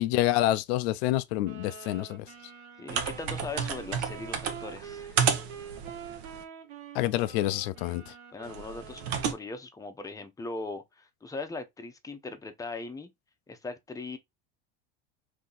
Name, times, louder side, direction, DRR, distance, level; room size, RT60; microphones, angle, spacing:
voice 1, 0.0-2.2 6.9-8.1, left 15 dB, 80° left, 0.5 m, -27 dB
sound 1, 1.4-9.4, right 7 dB, 60° right, 1.2 m, -46 dB
voice 2, 2.8-5.2 8.3-13.1 13.5-14.2, left 3 dB, 10° left, 0.7 m, -39 dB
sound 2, 2.9-6.4 8.4-9.3, right 7 dB, 75° right, 0.8 m, -32 dB
2.8 x 2.8 x 3.8 m
supercardioid pair, 110°, 32 cm